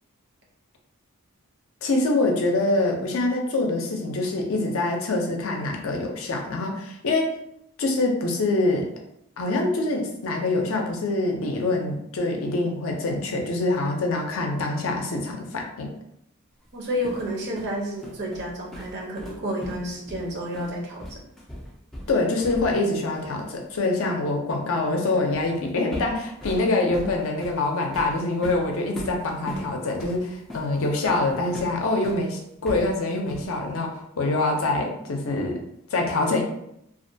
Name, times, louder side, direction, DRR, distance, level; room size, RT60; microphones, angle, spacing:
voice 1, 1.8-7.4 7.8-8.9 9.4-15.9 22.1-35.6 35.9-36.4, left 2 dB, 65° left, 2 dB, 0.5 m, -25 dB
sound 1, 16.7-22.9 23.1-23.4 25.3-25.6 25.9-32.2 32.6-33.6, equal, ahead, 0.3 m, -39 dB
voice 2, 16.7-21.2, equal, 50° right, -2 dB, 0.6 m, -30 dB
2.4 x 2.2 x 2.6 m, 0.78 s
head